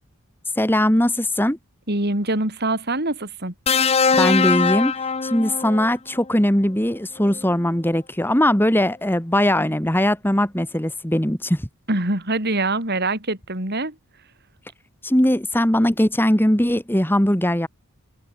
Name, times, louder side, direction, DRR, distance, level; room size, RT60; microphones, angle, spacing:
voice 1, 0.6-1.6 4.2-4.9 5.2-11.6 15.0-17.7, left 1 dB, 10° left, 2.2 m, -20 dB
voice 2, 1.9-3.5 11.9-13.9, right 2 dB, 45° right, 4.6 m, -24 dB
sound 1, 3.7-5.9 7.2-7.4, left 5 dB, 25° left, 0.7 m, -21 dB
head